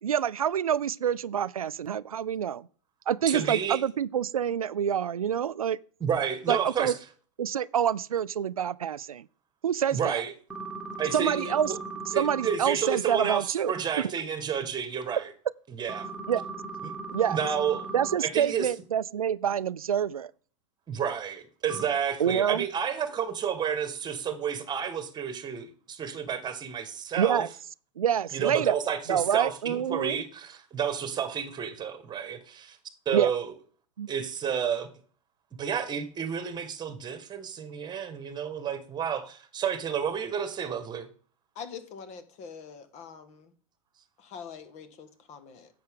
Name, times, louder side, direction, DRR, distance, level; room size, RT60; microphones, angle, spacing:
voice 1, 0.0-2.7 3.1-5.8 6.5-6.9 7.4-9.3 9.6-10.2 11.1-11.7 12.2-13.7 16.3-16.4 17.1-17.4 17.9-20.3 22.2-22.7 27.2-27.5 28.0-28.7 29.1-30.2 33.1-33.3 34.0-34.1, right 9 dB, 90° right, 0.4 m, -27 dB
voice 2, 3.3-3.8 6.0-6.9 9.9-10.3 11.0-11.8 12.1-15.3 15.8-16.1 16.8-16.9 17.3-17.9 18.2-18.7 20.9-27.4 28.3-32.8 33.0-33.5 34.1-34.9 35.6-41.1, right 7 dB, 25° right, 1.6 m, -31 dB
sound 1, 10.5-12.6 15.9-18.1 21.7-21.9, right 4 dB, 5° right, 2.1 m, -38 dB
voice 3, 41.5-43.5 44.2-45.7, left 6 dB, 40° left, 1.7 m, -44 dB
10.5 x 7.6 x 3.7 m
hypercardioid pair, 100°, 18 cm